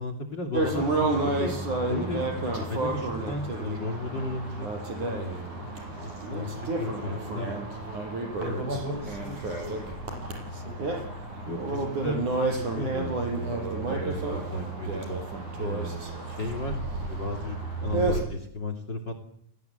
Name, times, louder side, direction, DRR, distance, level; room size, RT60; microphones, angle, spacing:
voice 1, 0.0-1.6 1.9-4.7 5.0-7.5 8.5-8.7 11.4-13.6 13.9-15.2 15.6-19.1, left 2 dB, 35° left, 8 dB, 3.2 m, -35 dB
sound 1, 0.5-18.2, right 2 dB, 75° right, 7.2 m, -31 dB
voice 2, 8.3-10.2 10.5-10.9, right 1 dB, 40° right, 6 dB, 7.3 m, -37 dB
29.5 x 21.5 x 8.1 m, 0.71 s
omnidirectional pair, 3.6 m